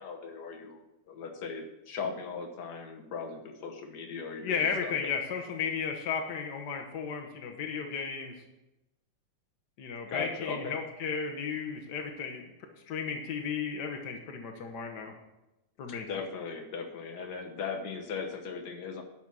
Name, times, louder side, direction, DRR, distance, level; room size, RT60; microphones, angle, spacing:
voice 1, 0.0-5.1 10.1-10.7 16.1-19.0, left 5 dB, 55° left, 3 dB, 1.1 m, -38 dB
voice 2, 4.4-8.3 9.8-12.4 12.9-15.2 15.8-16.1, left 6 dB, 80° left, 4 dB, 0.9 m, -34 dB
11.5 x 6.0 x 6.2 m, 0.95 s
omnidirectional pair, 3.4 m